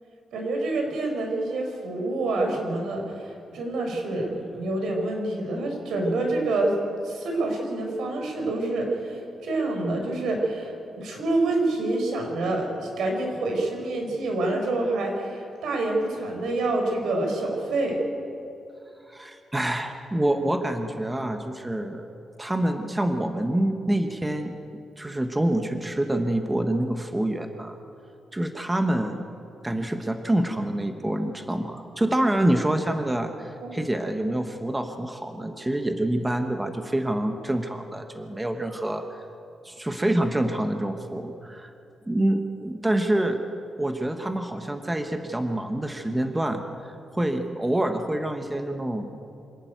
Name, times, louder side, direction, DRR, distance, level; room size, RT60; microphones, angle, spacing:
voice 1, 0.3-6.8 7.0-18.0 33.6-33.8, right 2 dB, 85° right, 2 dB, 4.7 m, -27 dB
voice 2, 19.1-22.1 22.4-24.5 25.0-27.8 28.3-29.2 29.6-39.0 39.6-41.7 42.1-43.4 43.8-46.6 47.1-49.2, right 1 dB, 10° right, 5 dB, 1.0 m, -26 dB
26.0 x 11.5 x 9.2 m, 2.8 s
wide cardioid pair, 180°, 0 cm